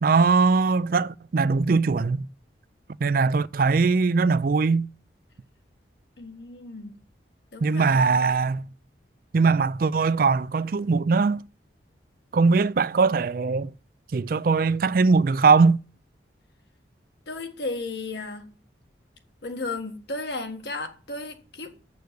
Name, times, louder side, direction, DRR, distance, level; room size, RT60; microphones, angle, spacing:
voice 1, 0.0-2.3 3.0-4.9 7.6-8.7 9.3-11.4 12.3-13.7 14.1-15.8, right 4 dB, 50° right, 0.4 m, -21 dB
voice 2, 6.2-7.0 7.5-8.2 17.3-18.5 19.4-21.8, left 3 dB, 65° left, 1.6 m, -34 dB
7.8 x 6.7 x 6.8 m
head